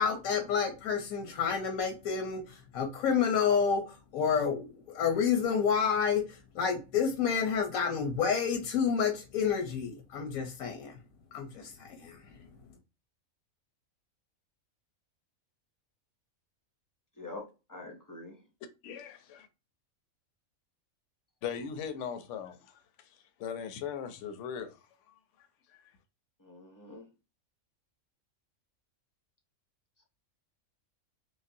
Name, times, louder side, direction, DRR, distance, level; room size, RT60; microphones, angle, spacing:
voice 1, 0.0-2.4 2.7-3.8 4.1-6.2 6.5-10.9 11.3-11.5 11.9-12.1, left 6 dB, 90° left, 1.2 m, -29 dB
voice 2, 17.2-18.4 26.4-27.1, left 2 dB, 25° left, 0.4 m, -45 dB
voice 3, 18.8-19.5 21.4-22.7 23.4-24.8 25.7-25.8, left 7 dB, 70° left, 0.9 m, -38 dB
5.2 x 2.0 x 2.6 m
omnidirectional pair, 1.4 m